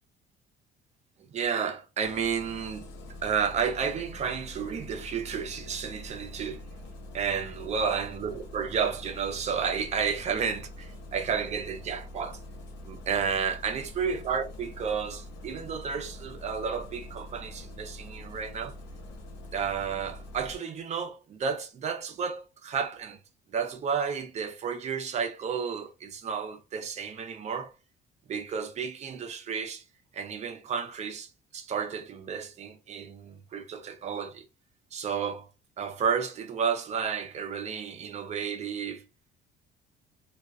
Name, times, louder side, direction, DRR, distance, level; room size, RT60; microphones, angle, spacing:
voice 1, 1.3-2.9 3.2-6.6 7.1-12.4 12.8-18.7 19.5-23.2 23.5-27.7 28.3-29.8 30.1-34.4 34.9-35.5 35.8-39.0, right 6 dB, 40° right, 0.6 m, -32 dB
Engine starting, 2.0-20.6, left 1 dB, 85° left, 0.8 m, -44 dB
2.3 x 2.2 x 2.4 m
cardioid pair, 110°, 17 cm